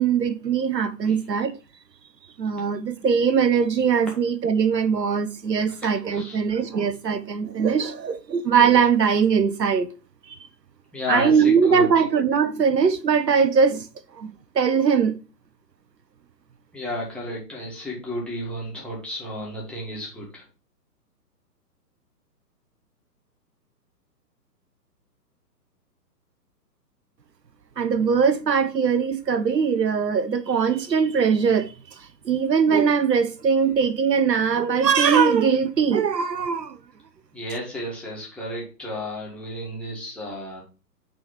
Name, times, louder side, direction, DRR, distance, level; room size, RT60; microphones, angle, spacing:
voice 1, 0.0-1.6 2.4-9.9 11.1-13.8 14.2-14.3 14.6-15.1 27.8-31.7 32.3-36.8, right 6 dB, 80° right, 0.8 m, -21 dB
voice 2, 5.7-6.4 10.9-12.0 16.7-20.4 37.3-40.6, left 1 dB, ahead, 1.6 m, -32 dB
6.2 x 3.5 x 4.5 m
figure-of-eight pair, 125°, 49 cm